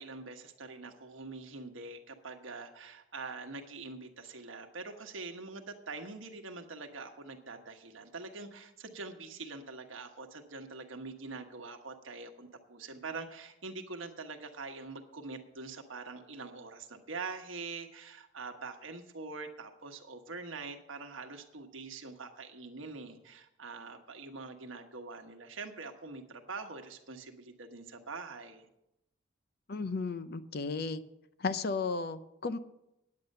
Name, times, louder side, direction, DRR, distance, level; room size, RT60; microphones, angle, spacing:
voice 1, 0.0-28.7, right 3 dB, 85° right, 5 dB, 1.3 m, -44 dB
voice 2, 29.7-31.0 31.4-32.6, left 4 dB, 50° left, 12 dB, 0.6 m, -34 dB
9.8 x 8.5 x 6.6 m, 0.85 s
head